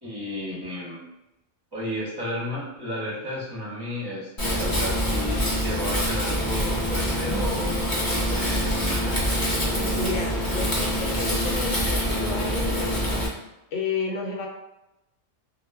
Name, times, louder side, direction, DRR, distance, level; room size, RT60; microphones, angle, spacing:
voice 1, 0.0-1.0 1.7-9.2, left 1 dB, 30° right, -7 dB, 0.5 m, -33 dB
Wind, 4.4-13.3, equal, 30° left, 0.4 m, -25 dB
voice 2, 10.0-13.0 13.7-14.5, left 4 dB, 80° left, 0 dB, 0.9 m, -31 dB
2.1 x 2.0 x 3.3 m, 0.91 s
omnidirectional pair, 1.2 m